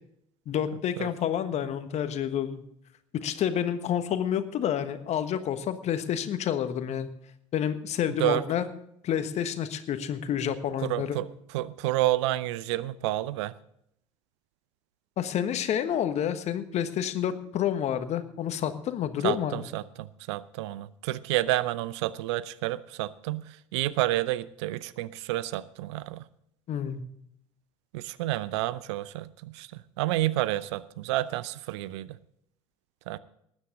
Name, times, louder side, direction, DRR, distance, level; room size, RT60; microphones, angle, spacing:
voice 1, 0.5-2.6 3.1-7.1 7.5-8.7 9.0-11.2 15.2-19.7 26.7-27.0, left 9 dB, 45° left, 11 dB, 1.3 m, -29 dB
voice 2, 10.8-11.3 11.5-13.5 19.2-26.2 27.9-29.7 30.0-32.1 33.1-33.2, right 16 dB, 65° right, 18 dB, 0.6 m, -29 dB
19.5 x 9.6 x 3.9 m, 0.72 s
figure-of-eight pair, 60°, 16 cm